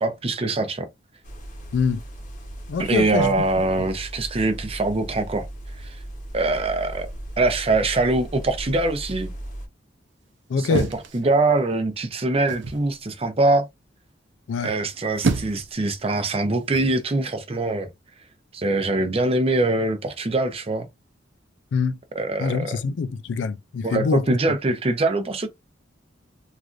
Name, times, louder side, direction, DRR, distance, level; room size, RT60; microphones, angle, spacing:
voice 1, 0.0-0.9 2.8-5.5 5.8-6.0 6.3-7.1 7.4-9.3 10.6-10.9 11.1-13.7 14.6-17.9 18.5-20.9 22.2-22.8 23.8-25.5, right 2 dB, 35° right, 0.6 m, -23 dB
sound 1, 1.2-9.7, right 1 dB, 45° left, 0.8 m, -37 dB
voice 2, 2.7-3.3 10.5-10.9 14.5-14.7 21.7-22.0 22.4-24.3, left 5 dB, 75° left, 0.4 m, -24 dB
sound 2, 10.7-11.8 12.5-12.9 14.8-15.7 16.7-17.0, right 3 dB, 75° right, 0.6 m, -28 dB
3.2 x 2.5 x 2.4 m
head